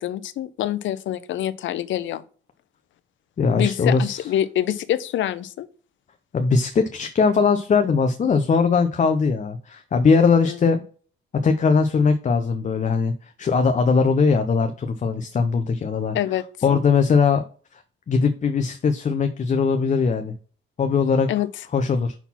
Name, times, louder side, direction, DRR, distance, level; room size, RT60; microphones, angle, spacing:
voice 1, 0.0-2.2 3.6-5.7 10.4-10.6 16.1-16.4 21.3-21.5, left 12 dB, 75° left, 0.7 m, -25 dB
voice 2, 3.4-4.2 6.3-10.8 11.4-16.2 16.6-17.4 18.1-20.3 20.8-21.3 21.7-22.1, left 5 dB, 40° left, 0.7 m, -20 dB
5.9 x 4.0 x 5.8 m
cardioid pair, 90°, 20 cm